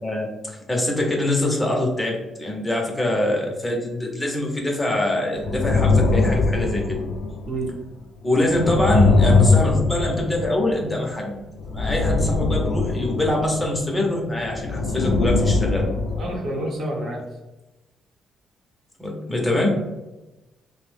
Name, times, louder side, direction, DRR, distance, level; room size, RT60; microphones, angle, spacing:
voice 1, 0.0-7.0 8.2-11.4 11.7-15.9 19.0-19.7, left 1 dB, 15° left, -1 dB, 0.7 m, -24 dB
sound 1, 5.4-7.7 8.3-11.0 11.6-13.8 14.3-16.4, left 3 dB, 70° left, 0.3 m, -21 dB
voice 2, 16.2-17.3 19.5-19.6, right 1 dB, 60° right, -1 dB, 0.8 m, -28 dB
2.7 x 2.0 x 3.2 m, 1.0 s
cardioid pair, 90°, 0 cm